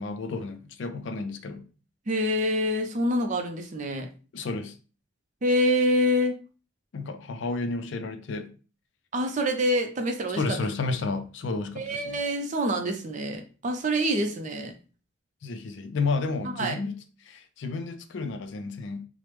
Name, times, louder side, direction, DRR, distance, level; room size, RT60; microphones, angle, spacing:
voice 1, 0.0-1.6 4.3-4.7 6.9-8.5 10.3-12.2 15.4-17.0 17.2-19.1, left 3 dB, 60° left, 0.4 m, -31 dB
voice 2, 2.1-4.1 5.4-6.4 9.1-10.4 11.8-14.7 16.6-16.7, equal, 35° right, 0.4 m, -26 dB
3.2 x 2.0 x 3.0 m
head